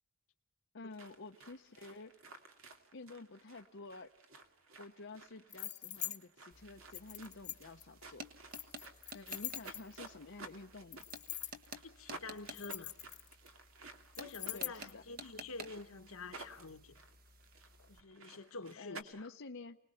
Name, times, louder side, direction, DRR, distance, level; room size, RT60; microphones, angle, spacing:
voice 1, 0.7-2.1 2.9-4.1 4.8-8.3 9.1-11.0 14.5-15.0 17.8-17.9 18.8-19.8, left 3 dB, 60° left, 0.8 m, -50 dB
sound 1, 0.9-19.0, right 3 dB, 70° right, 2.5 m, -55 dB
sound 2, 5.5-6.2 6.9-7.8 8.5-10.1 10.9-11.7 12.4-13.5 14.1-14.9, left 12 dB, 35° left, 1.0 m, -43 dB
sound 3, 6.5-18.0, right 2 dB, 45° right, 1.5 m, -54 dB
voice 2, 11.8-12.9 14.2-17.0 17.9-19.3, left 3 dB, 80° left, 1.4 m, -48 dB
29.0 x 20.0 x 5.7 m
head